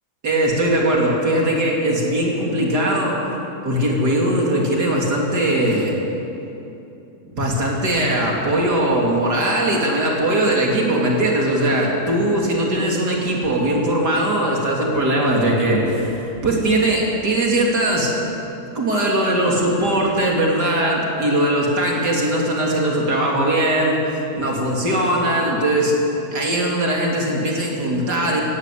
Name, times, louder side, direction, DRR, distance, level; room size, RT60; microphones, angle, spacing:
voice 1, 0.2-3.2 3.6-5.9 7.4-18.1 18.8-25.9 26.3-28.4, right 1 dB, 85° right, -2 dB, 3.8 m, -20 dB
18.0 x 16.5 x 8.7 m, 2.8 s
omnidirectional pair, 1.7 m